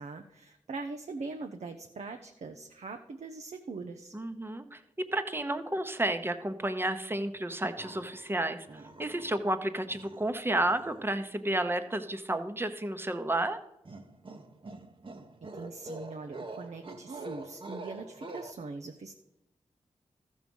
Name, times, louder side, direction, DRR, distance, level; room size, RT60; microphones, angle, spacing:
voice 1, 0.0-4.1 15.4-19.1, right 3 dB, 65° right, 6 dB, 0.7 m, -42 dB
voice 2, 4.1-4.8 5.1-13.6, right 1 dB, 20° right, 9 dB, 0.9 m, -31 dB
sound 1, 7.8-8.3 8.7-9.5 9.9-11.1 13.8-18.5, right 2 dB, 45° right, 1.0 m, -45 dB
13.5 x 6.3 x 5.4 m, 0.88 s
cardioid pair, 50°, 12 cm